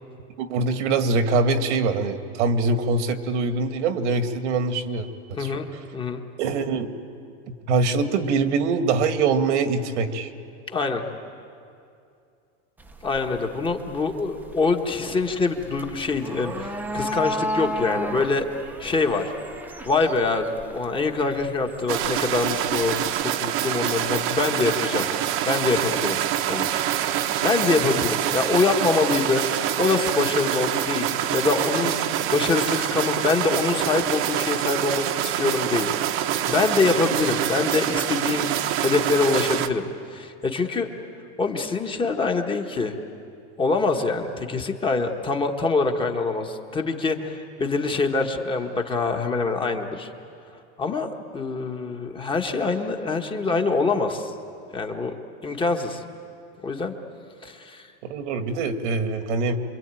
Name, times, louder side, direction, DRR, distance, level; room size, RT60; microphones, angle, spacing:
voice 1, 0.4-5.6 6.4-6.9 7.5-10.3 58.0-59.6, right 3 dB, 85° right, 7 dB, 2.1 m, -24 dB
voice 2, 5.4-6.2 10.7-11.0 13.0-18.5 18.8-19.3 19.8-25.1 25.5-26.2 26.5-26.7 27.4-29.4 29.8-35.9 36.5-38.5 38.8-40.9 41.4-43.0 43.6-50.1 50.8-51.1 51.3-54.3 54.7-55.1 55.4-56.0 56.6-56.9 57.4-57.9, left 3 dB, 15° left, 4 dB, 1.3 m, -24 dB
sound 1, 12.8-23.2, equal, 5° right, 0.7 m, -34 dB
sound 2, 21.9-39.7, right 11 dB, 40° right, 1.0 m, -25 dB
27.0 x 23.5 x 9.0 m, 2.5 s
supercardioid pair, 165°, 35 cm